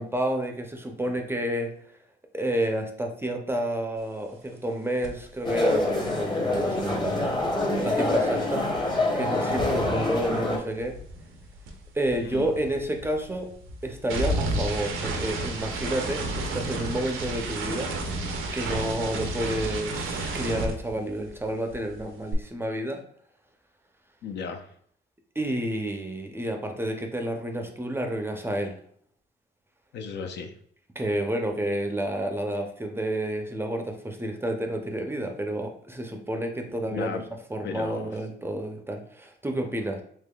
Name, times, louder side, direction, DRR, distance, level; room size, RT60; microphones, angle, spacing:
voice 1, 0.0-1.7 2.3-7.2 7.8-10.9 11.9-13.5 13.8-17.9 18.5-23.0 25.4-28.8 31.0-37.2 37.5-40.0, right 1 dB, 10° right, 3 dB, 0.5 m, -30 dB
sound 1, 5.0-5.2 5.5-9.9 10.1-21.4 21.7-22.3, right 2 dB, 85° right, 0.7 m, -32 dB
sound 2, 5.5-10.6, left 2 dB, 20° left, 0.8 m, -26 dB
voice 2, 24.2-24.7 29.9-30.5 36.9-37.2 37.6-38.1, left 5 dB, 60° left, 5 dB, 0.5 m, -35 dB
3.6 x 3.0 x 2.2 m, 0.62 s
cardioid pair, 90°, 20 cm